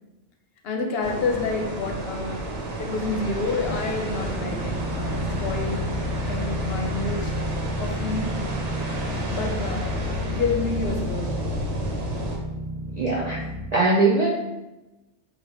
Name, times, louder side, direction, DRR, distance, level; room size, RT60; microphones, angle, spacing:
voice 1, 0.6-2.5 2.8-5.9 6.3-7.3 7.8-8.4 9.3-10.0 10.3-11.3, left 3 dB, 65° left, 2 dB, 0.8 m, -29 dB
sound 1, 1.0-12.4, right 2 dB, 90° right, 1.0 m, -31 dB
sound 2, 3.6-13.6, left 2 dB, 40° right, 1.8 m, -31 dB
voice 2, 13.0-13.4 13.7-14.3, right 3 dB, 60° right, -4 dB, 0.4 m, -20 dB
4.8 x 2.2 x 2.5 m, 1.0 s
omnidirectional pair, 1.2 m